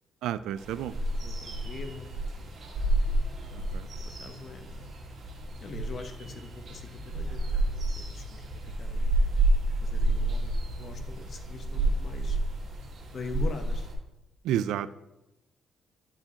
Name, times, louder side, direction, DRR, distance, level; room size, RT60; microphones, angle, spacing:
voice 1, 0.2-0.9 3.7-3.9 14.4-14.9, right 10 dB, 85° right, 15 dB, 0.3 m, -30 dB
sound 1, 0.6-13.9, right 1 dB, 55° right, 1.9 m, -30 dB
voice 2, 1.2-2.1 3.8-4.9 5.6-8.4 8.8-9.1 9.8-12.4 13.1-13.9, left 4 dB, 50° left, 6 dB, 0.9 m, -43 dB
12.5 x 4.9 x 2.8 m, 0.95 s
cardioid pair, 90°, 0 cm